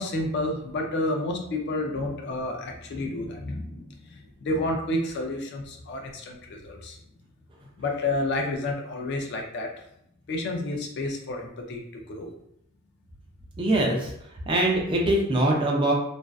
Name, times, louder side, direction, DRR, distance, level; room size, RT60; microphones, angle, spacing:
voice 1, 0.0-7.0 7.8-9.7 10.3-11.8 12.1-12.3, left 2 dB, 50° left, 1 dB, 0.4 m, -30 dB
voice 2, 13.6-14.1 14.5-15.9, right 1 dB, 25° right, -1 dB, 0.4 m, -23 dB
2.5 x 2.2 x 2.3 m, 0.75 s
head